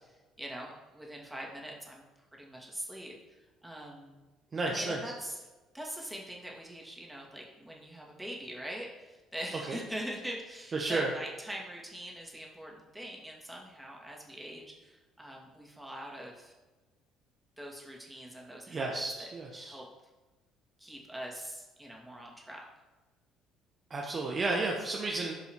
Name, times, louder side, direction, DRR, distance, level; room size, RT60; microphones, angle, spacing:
voice 1, 0.0-4.2 4.7-5.5 5.7-16.5 17.6-19.9 20.8-22.6, equal, 10° right, -2 dB, 2.4 m, -43 dB
voice 2, 4.5-5.0 9.7-9.8 10.7-11.1 18.7-19.8 23.9-25.3, right 3 dB, 35° right, 0 dB, 1.2 m, -32 dB
16.0 x 5.4 x 3.1 m, 1.2 s
figure-of-eight pair, 55°, 0 cm